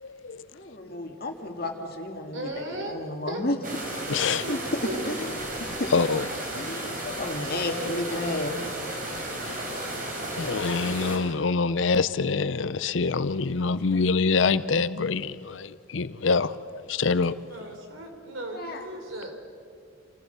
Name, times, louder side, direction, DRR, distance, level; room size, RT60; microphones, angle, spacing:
voice 1, 0.0-0.4 4.1-4.4 5.9-6.4 7.0-7.1 9.5-9.8 10.4-17.3, left 4 dB, 70° left, 0.6 m, -25 dB
voice 2, 0.5-3.6 4.5-4.6 5.1-5.3 5.6-5.9 6.5-8.6 18.5-18.8, left 1 dB, 50° left, 2.0 m, -32 dB
voice 3, 2.3-2.9 3.3-3.4 4.4-5.0 17.5-19.3, right 1 dB, 75° right, 3.6 m, -36 dB
sound 1, 3.6-11.2, right 1 dB, 45° right, 3.8 m, -34 dB
28.0 x 15.5 x 6.8 m
head